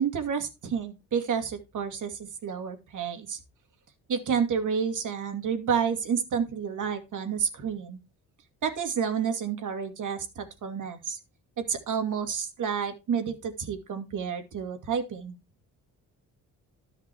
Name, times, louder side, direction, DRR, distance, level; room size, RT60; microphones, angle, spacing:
voice 1, 0.0-3.4 4.1-8.0 8.6-11.2 11.6-15.4, right 7 dB, 60° right, 7 dB, 2.5 m, -30 dB
13.0 x 5.9 x 4.6 m, 0.26 s
cardioid pair, 95°, 34 cm